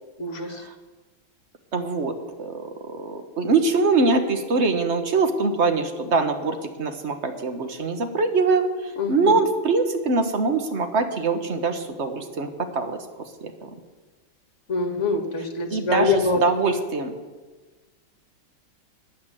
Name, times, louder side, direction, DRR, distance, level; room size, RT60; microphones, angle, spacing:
voice 1, 0.2-0.6 9.0-9.3 14.7-16.4, left 3 dB, 40° left, 4 dB, 1.7 m, -24 dB
voice 2, 1.7-13.0 13.4-13.7 15.7-17.1, right 4 dB, 40° right, 7 dB, 1.2 m, -23 dB
10.0 x 9.3 x 7.6 m, 1.3 s
omnidirectional pair, 2.2 m